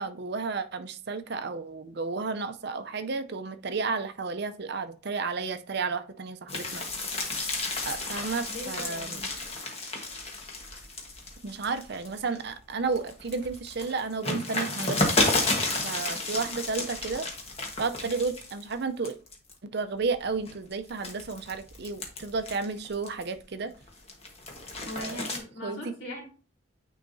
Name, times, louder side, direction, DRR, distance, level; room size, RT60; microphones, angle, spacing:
voice 1, 0.0-6.8 7.8-9.2 11.4-15.1 15.8-17.3 17.8-19.2 19.6-23.7 25.0-25.2 25.6-25.8, right 4 dB, 55° right, 10 dB, 0.6 m, -32 dB
sound 1, 6.5-12.4 12.9-18.7 19.0-19.5 20.1-23.4 23.8-25.4, left 2 dB, 30° left, 1.3 m, -32 dB
voice 2, 8.5-9.3 24.8-26.2, left 1 dB, 75° left, -2 dB, 2.5 m, -40 dB
9.3 x 4.6 x 2.7 m, 0.38 s
head